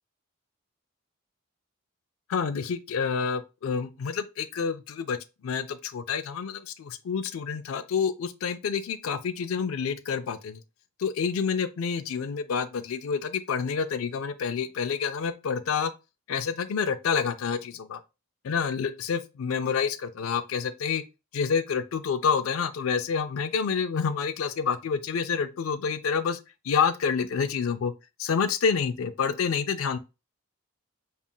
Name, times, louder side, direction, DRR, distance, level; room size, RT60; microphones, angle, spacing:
voice 1, 2.3-5.2 5.4-10.6 11.0-15.9 16.3-18.0 18.4-21.0 21.3-26.4 26.7-27.9 28.2-30.0, left 6 dB, 80° left, 0.4 m, -28 dB
5.4 x 2.4 x 2.2 m
head